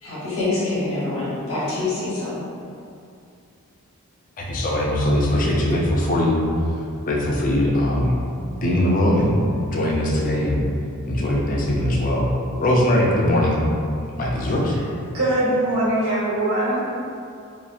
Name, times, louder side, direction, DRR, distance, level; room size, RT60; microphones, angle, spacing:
voice 1, 0.0-2.4, left 2 dB, 65° left, -11 dB, 1.1 m, -25 dB
voice 2, 4.4-6.4 7.1-8.2 8.6-10.6 11.1-12.3 12.6-13.6 14.2-14.8, left 1 dB, 35° left, -2 dB, 0.3 m, -20 dB
voice 3, 15.1-16.8, right 1 dB, 75° right, -10 dB, 1.2 m, -21 dB
2.9 x 2.3 x 2.4 m, 2.5 s
head